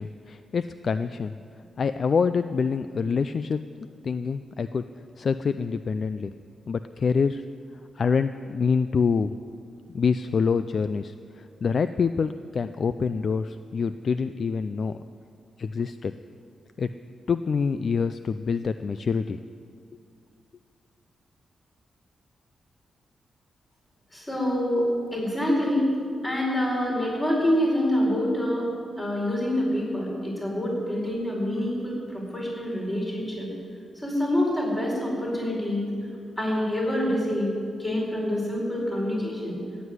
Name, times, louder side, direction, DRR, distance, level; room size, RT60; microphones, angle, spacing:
voice 1, 0.0-1.4 1.8-3.6 4.0-4.9 5.2-6.3 6.7-7.5 8.0-9.3 9.9-15.0 15.6-16.1 16.8-16.9 17.3-19.4, left 5 dB, 45° left, 11 dB, 0.3 m, -26 dB
voice 2, 24.1-25.9 26.2-28.7 29.0-33.5 34.0-35.8 36.4-37.5 37.8-39.6, left 1 dB, 15° left, -3 dB, 4.7 m, -26 dB
14.5 x 8.1 x 9.7 m, 2.3 s
wide cardioid pair, 150°, 0 cm